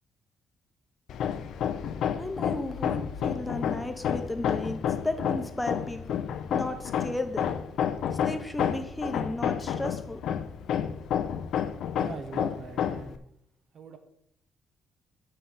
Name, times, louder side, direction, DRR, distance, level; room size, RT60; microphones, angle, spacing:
Hammer, 1.1-13.2, left 8 dB, 75° left, 0.5 m, -30 dB
voice 1, 2.1-6.0 6.5-7.5 8.1-10.2, left 2 dB, 10° left, 6 dB, 0.9 m, -34 dB
voice 2, 12.0-13.3 13.7-14.0, right 4 dB, 60° right, 7 dB, 1.1 m, -41 dB
6.6 x 5.6 x 5.7 m, 0.73 s
cardioid pair, 90°, 0 cm